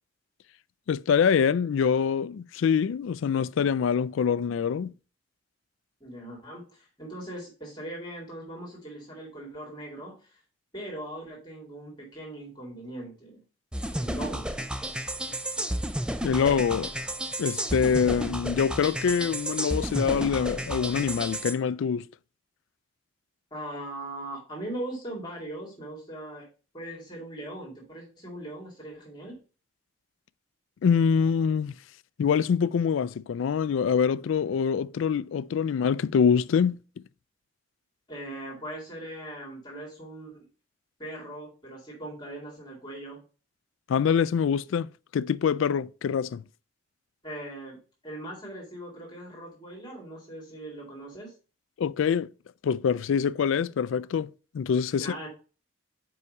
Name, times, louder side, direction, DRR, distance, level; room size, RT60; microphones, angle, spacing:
voice 1, 0.9-4.9 16.2-16.9 17.4-22.1 30.8-31.7 32.2-36.8 43.9-44.9 45.1-46.4 51.8-52.3 52.6-55.1, left 7 dB, 75° left, 0.3 m, -25 dB
voice 2, 6.0-10.4 10.7-13.4 14.0-14.6 23.5-26.5 26.7-29.4 38.1-40.4 41.0-43.2 47.2-47.8 48.0-51.3 55.0-55.3, right 1 dB, 20° left, 2.2 m, -40 dB
sound 1, 13.7-21.5, right 1 dB, 5° right, 0.4 m, -32 dB
5.6 x 4.8 x 5.2 m
head